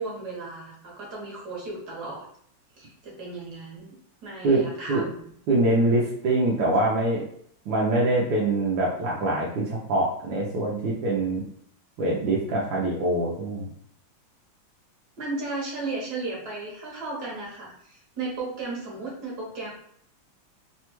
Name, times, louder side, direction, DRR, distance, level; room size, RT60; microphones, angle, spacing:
voice 1, 0.0-2.3 2.8-4.0 4.2-5.2 15.2-19.7, right 3 dB, 60° right, -3 dB, 1.4 m, -35 dB
voice 2, 5.5-7.2 7.7-11.5 12.0-13.7, right 2 dB, 75° right, -4 dB, 1.3 m, -24 dB
3.4 x 2.2 x 2.9 m, 0.66 s
omnidirectional pair, 2.1 m